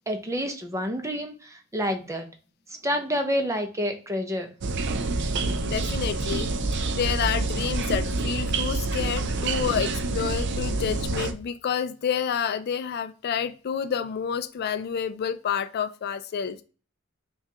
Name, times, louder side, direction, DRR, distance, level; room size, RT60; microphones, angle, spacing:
voice 1, 0.1-1.3 1.7-2.3 2.8-4.5, equal, 15° right, 0.6 m, -28 dB
sound 1, 4.6-11.3, right 3 dB, 60° right, 0.5 m, -27 dB
voice 2, 5.7-6.5 6.9-16.6, left 7 dB, 50° left, 0.3 m, -29 dB
5.6 x 2.4 x 2.8 m
head